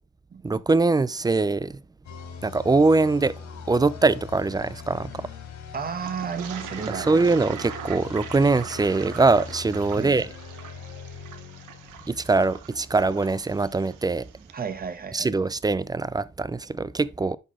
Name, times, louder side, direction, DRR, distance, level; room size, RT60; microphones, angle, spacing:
voice 1, 0.4-1.8 2.4-3.3 3.7-5.3 6.9-10.3 12.1-14.3 15.1-17.4, right 3 dB, 15° right, 0.4 m, -22 dB
sound 1, 2.0-12.7, left 6 dB, 70° left, 3.0 m, -41 dB
voice 2, 5.7-7.3 9.9-10.1 14.5-15.3, right 6 dB, 30° right, 1.1 m, -32 dB
Toilet flush, 6.0-14.6, right 10 dB, 85° right, 1.0 m, -41 dB
11.0 x 4.1 x 3.6 m
cardioid pair, 90°, 30 cm